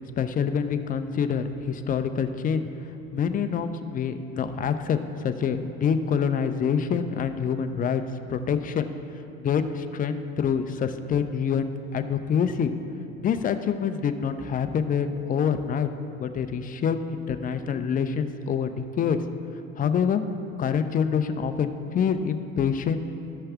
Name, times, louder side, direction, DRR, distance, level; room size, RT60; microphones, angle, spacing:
voice 1, 0.2-2.7 3.1-5.0 5.2-8.0 8.3-8.9 9.4-12.7 13.2-15.9 16.2-19.2 19.8-20.2 20.6-23.0, left 7 dB, 20° left, 9 dB, 0.4 m, -26 dB
13.5 x 5.4 x 3.5 m, 2.7 s
hypercardioid pair, 85°, 42 cm